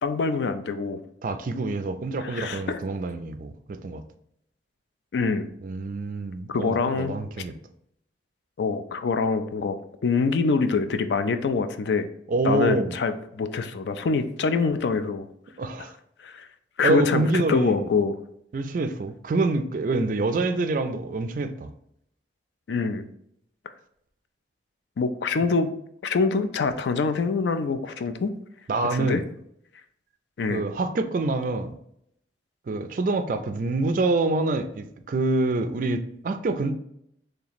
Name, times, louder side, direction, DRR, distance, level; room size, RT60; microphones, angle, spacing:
voice 1, 0.0-1.0 2.2-2.8 5.1-5.5 6.5-7.2 8.6-12.1 12.4-15.3 16.2-16.5 16.8-18.2 22.7-23.0 25.0-25.7 26.0-28.3 28.8-29.2 30.4-30.6, left 4 dB, 70° left, 10 dB, 0.4 m, -25 dB
voice 2, 1.2-4.0 5.6-7.5 12.3-13.0 15.6-15.9 16.8-17.9 18.5-21.7 28.7-29.2 30.5-31.8 32.7-36.8, right 3 dB, 45° right, 9 dB, 0.3 m, -26 dB
3.2 x 2.9 x 4.0 m, 0.74 s
head